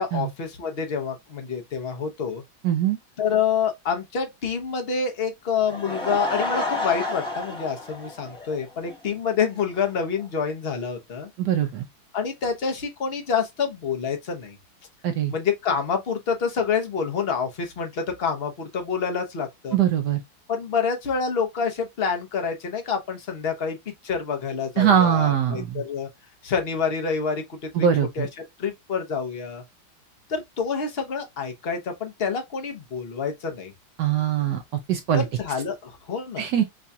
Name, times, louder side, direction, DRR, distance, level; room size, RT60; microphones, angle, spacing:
voice 1, 0.0-2.4 3.2-11.3 12.1-14.6 15.3-19.8 20.5-26.1 26.4-27.9 28.2-28.3 28.6-29.6 30.3-33.7 35.2-36.5, left 6 dB, 50° left, 0.7 m, -27 dB
voice 2, 2.6-3.0 11.4-11.8 15.0-15.3 19.7-20.2 24.8-25.8 27.8-28.3 34.0-34.6 34.9-35.2 36.4-36.6, right 9 dB, 70° right, 1.0 m, -22 dB
Laughter / Crowd, 5.5-8.9 9.3-9.4 9.9-10.0 10.2-10.3, left 2 dB, 5° left, 0.6 m, -30 dB
4.8 x 2.3 x 2.7 m
omnidirectional pair, 2.2 m